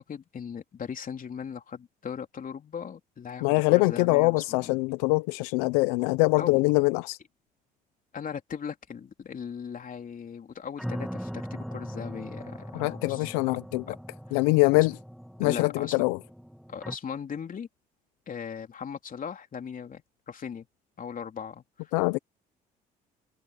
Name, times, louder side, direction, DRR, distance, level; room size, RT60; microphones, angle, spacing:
voice 1, 0.0-4.8 6.4-6.6 8.1-13.6 13.9-14.0 14.7-14.9 15.4-16.0 16.7-17.7 18.3-20.7 21.0-21.9, left 7 dB, 45° left, 3.3 m, -38 dB
voice 2, 3.4-7.2 12.7-13.8 14.3-15.0 15.4-16.2 21.9-22.2, left 25 dB, 85° left, 0.6 m, -23 dB
sound 1, 10.8-17.0, equal, ahead, 2.5 m, -40 dB
supercardioid pair, 65°, 20 cm